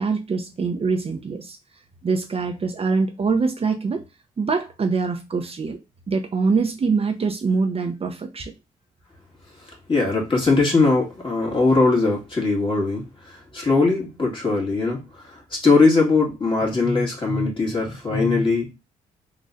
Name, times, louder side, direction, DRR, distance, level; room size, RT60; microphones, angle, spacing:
voice 1, 0.0-1.6 2.0-4.0 4.4-5.8 6.1-8.5, right 4 dB, 35° right, 0.7 m, -24 dB
voice 2, 9.9-18.7, left 3 dB, 30° left, 1.9 m, -20 dB
3.8 x 3.1 x 2.6 m
supercardioid pair, 55°, 16 cm